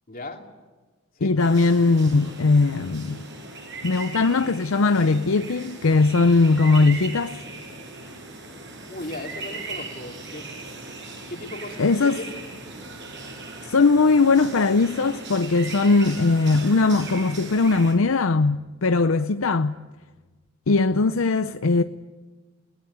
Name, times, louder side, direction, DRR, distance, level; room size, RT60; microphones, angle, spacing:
voice 1, 0.1-0.5 1.2-1.4 8.9-10.5 11.3-12.4, left 2 dB, 45° left, 2.9 m, -37 dB
voice 2, 1.2-3.3 3.8-7.4 11.8-12.2 13.7-19.7 20.7-21.8, left 3 dB, 80° left, 0.7 m, -20 dB
sound 1, 1.4-17.9, right 3 dB, 60° right, 7.1 m, -38 dB
21.5 x 19.0 x 9.3 m
head